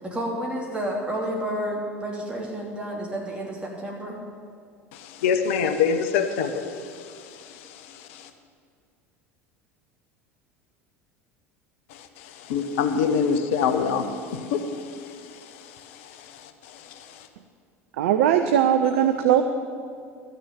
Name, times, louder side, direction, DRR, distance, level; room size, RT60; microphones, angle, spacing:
voice 1, 0.0-4.2, right 1 dB, 15° right, -2 dB, 3.1 m, -30 dB
voice 2, 5.2-6.6 12.5-14.6, left 6 dB, 60° left, 8 dB, 0.9 m, -23 dB
voice 3, 18.0-19.4, right 10 dB, 60° right, 8 dB, 0.6 m, -19 dB
13.0 x 6.6 x 8.9 m, 2.3 s
figure-of-eight pair, 70°, 8 cm